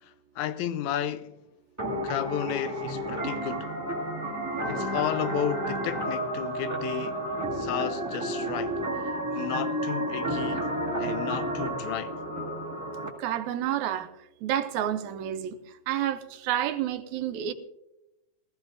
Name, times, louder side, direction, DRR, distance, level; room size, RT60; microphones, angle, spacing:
voice 1, 0.0-1.4 2.0-3.7 4.7-7.2 7.5-10.7 11.0-12.2, left 10 dB, 80° left, 2.0 m, -33 dB
sound 1, 1.8-13.1, right 1 dB, 10° right, 1.1 m, -31 dB
voice 2, 13.2-17.5, right 11 dB, 80° right, 2.0 m, -30 dB
19.0 x 14.5 x 2.6 m
omnidirectional pair, 3.4 m